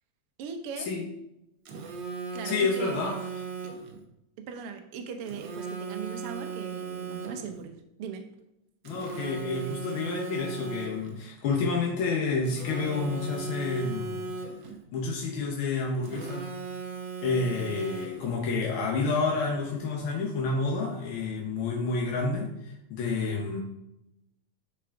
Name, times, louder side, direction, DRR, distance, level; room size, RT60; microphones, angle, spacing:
voice 1, 0.4-0.9 2.3-3.1 4.4-7.7 8.0-8.2, right 6 dB, 65° right, 5 dB, 1.5 m, -39 dB
Telephone, 1.6-4.0 5.3-7.6 8.8-11.2 12.4-14.8 16.0-18.4, right 5 dB, 85° right, 1.0 m, -37 dB
voice 2, 2.4-3.2 8.8-14.2 14.9-16.5 17.2-22.5 22.9-23.6, left 4 dB, 60° left, -1 dB, 1.4 m, -29 dB
10.0 x 4.8 x 3.5 m, 0.87 s
omnidirectional pair, 3.3 m